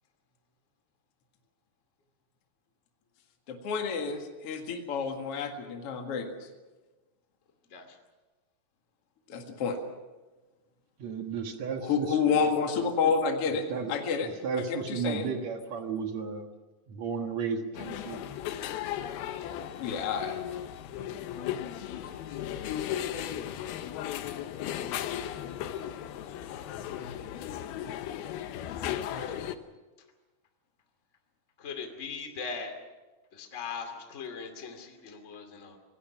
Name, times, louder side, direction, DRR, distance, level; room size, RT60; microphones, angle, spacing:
voice 1, 3.5-6.3 9.3-9.8 11.8-13.6 13.9-14.3 14.7-15.3 19.8-20.4 22.0-22.1, left 5 dB, 45° left, 3 dB, 2.4 m, -29 dB
voice 2, 11.0-12.2 13.7-13.9 14.2-16.5 16.9-18.2, right 6 dB, 55° right, 5 dB, 2.4 m, -33 dB
sound 1, 17.7-29.6, left 11 dB, 90° left, 2.9 m, -36 dB
voice 3, 29.1-29.5 31.6-32.7 33.3-35.8, left 5 dB, 25° left, 5 dB, 2.2 m, -40 dB
26.5 x 18.5 x 6.1 m, 1.2 s
omnidirectional pair, 4.3 m